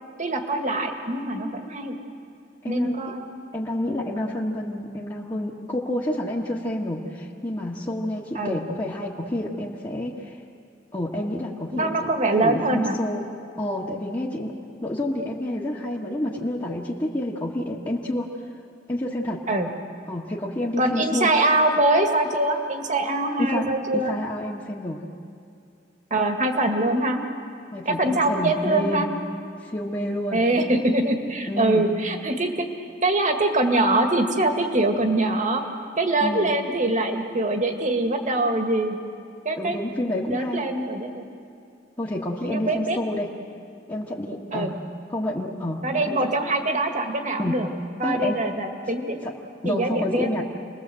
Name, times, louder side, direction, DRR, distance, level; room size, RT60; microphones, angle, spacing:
voice 1, 0.2-2.0 2.6-3.2 8.3-8.6 11.7-12.9 19.5-19.7 20.8-24.1 26.1-27.2 27.9-29.1 30.3-32.7 33.0-35.6 36.0-39.0 39.5-39.8 40.3-41.3 42.4-43.0 44.5-44.7 45.8-47.7 48.0-49.2 49.6-50.3, right 2 dB, 40° right, 4 dB, 2.0 m, -23 dB
voice 2, 2.6-3.1 3.5-10.4 10.9-12.1 12.4-13.2 13.6-14.5 14.8-18.3 18.9-19.4 20.1-21.3 23.4-25.0 27.7-29.1 29.6-30.4 31.5-31.9 36.2-36.6 39.6-40.6 42.0-43.3 43.9-44.8 45.1-46.2 47.4-47.6 48.0-48.4 49.2-49.3 49.6-50.4, left 1 dB, 25° left, -5 dB, 1.7 m, -29 dB
28.5 x 20.5 x 7.8 m, 2.5 s
head